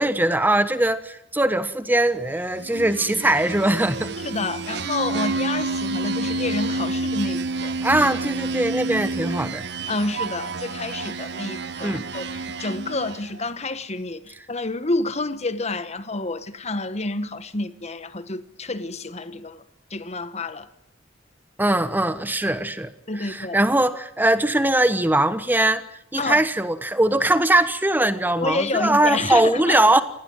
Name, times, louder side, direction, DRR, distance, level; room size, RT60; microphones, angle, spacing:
voice 1, 0.0-4.1 7.8-9.6 11.8-12.0 21.6-22.9 23.2-25.8 26.1-30.0, right 1 dB, 10° right, 1.3 m, -21 dB
sound 1, 2.5-13.4, right 3 dB, 65° right, 1.4 m, -29 dB
voice 2, 4.2-7.7 9.9-19.6 19.9-20.7 23.1-23.6 26.2-26.4 28.4-29.8, left 2 dB, 35° left, 1.5 m, -29 dB
29.0 x 19.5 x 9.1 m
head